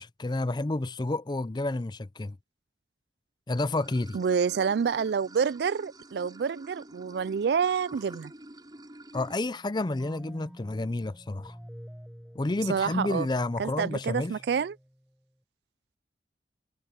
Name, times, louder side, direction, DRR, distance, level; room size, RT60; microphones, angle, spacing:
voice 1, 0.0-2.4 3.5-4.2 9.1-11.6 12.3-14.3, left 2 dB, 25° left, 0.5 m, -30 dB
Water / Sink (filling or washing), 3.7-9.4, right 1 dB, 25° right, 6.5 m, -48 dB
voice 2, 4.1-8.3 12.7-13.3 13.6-14.8, right 6 dB, 65° right, 0.3 m, -28 dB
sound 1, 9.6-15.0, equal, 5° right, 7.4 m, -47 dB
head